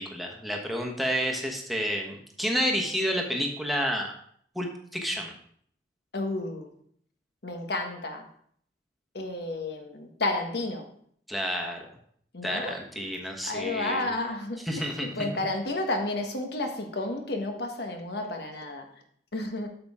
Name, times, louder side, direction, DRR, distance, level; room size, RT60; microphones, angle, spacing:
voice 1, 0.0-4.1 4.5-5.3 11.3-11.8 12.4-14.1 14.7-15.3, equal, ahead, 1 dB, 1.2 m, -30 dB
voice 2, 6.1-6.7 7.4-8.3 9.1-10.9 12.3-12.7 13.4-18.9 19.3-19.7, left 2 dB, 65° left, 4 dB, 1.3 m, -31 dB
8.5 x 6.9 x 3.6 m, 0.62 s
head